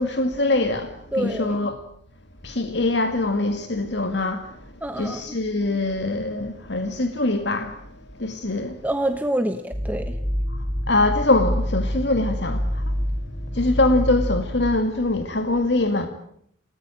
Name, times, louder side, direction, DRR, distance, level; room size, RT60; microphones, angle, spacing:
voice 1, 0.0-1.7 2.4-4.5 5.0-7.7 8.2-8.8 10.9-12.9 13.5-16.1, left 2 dB, 60° left, 2.1 m, -23 dB
voice 2, 1.1-1.6 4.8-5.3 8.8-10.1, right 1 dB, 10° right, 1.2 m, -26 dB
sound 1, 9.7-14.8, equal, 10° left, 3.5 m, -27 dB
29.0 x 19.5 x 9.0 m
head